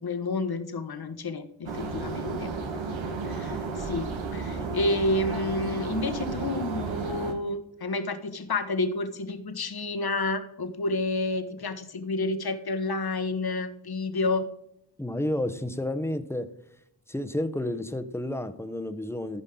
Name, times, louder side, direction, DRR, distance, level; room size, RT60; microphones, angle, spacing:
voice 1, 0.0-2.5 3.2-14.5, left 2 dB, 55° left, 9 dB, 1.2 m, -30 dB
sound 1, 1.7-7.3, right 4 dB, 90° right, 1.3 m, -33 dB
voice 2, 15.0-16.5 17.1-19.4, left 1 dB, 5° left, 11 dB, 0.9 m, -31 dB
14.5 x 5.3 x 3.8 m, 0.77 s
cardioid pair, 50°, 45 cm